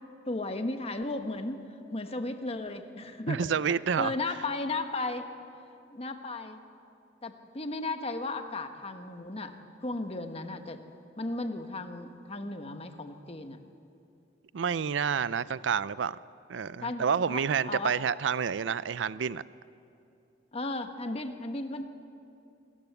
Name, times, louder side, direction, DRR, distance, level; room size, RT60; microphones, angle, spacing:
voice 1, 0.3-1.6 1.9-3.5 4.0-5.3 5.9-6.6 7.2-9.6 9.8-10.8 11.2-13.6 16.8-18.0 20.5-21.9, left 2 dB, 35° left, 7 dB, 1.2 m, -35 dB
voice 2, 3.3-4.1 14.5-16.2 16.5-19.4, right 7 dB, 85° right, 18 dB, 0.5 m, -29 dB
27.5 x 14.0 x 8.1 m, 2.7 s
head